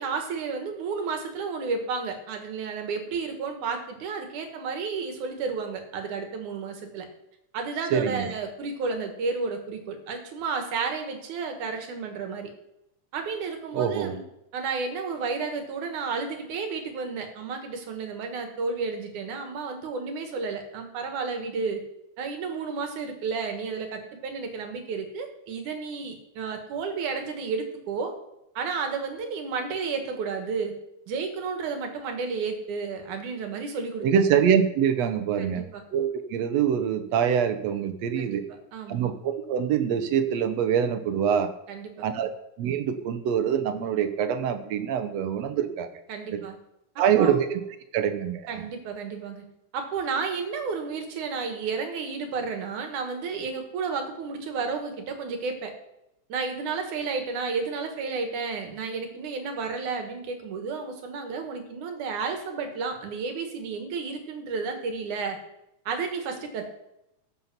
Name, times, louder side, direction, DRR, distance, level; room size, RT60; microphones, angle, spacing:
voice 1, 0.0-7.1 7.5-12.5 13.1-14.2 14.5-21.8 22.2-28.1 28.6-30.7 31.1-34.1 35.4-35.8 38.2-38.4 38.7-39.1 41.7-42.1 46.1-46.6 47.0-47.4 48.5-49.4 49.7-55.7 56.3-65.4 65.9-66.7, right 5 dB, 85° right, 5 dB, 2.9 m, -32 dB
voice 2, 7.9-8.3 13.7-14.1 34.0-35.6 35.9-38.4 38.9-41.5 42.0-42.3 42.6-45.9 46.3-46.4 47.0-47.6 47.9-48.6, right 8 dB, 70° right, 9 dB, 1.9 m, -24 dB
14.0 x 5.6 x 5.9 m, 0.84 s
omnidirectional pair, 3.4 m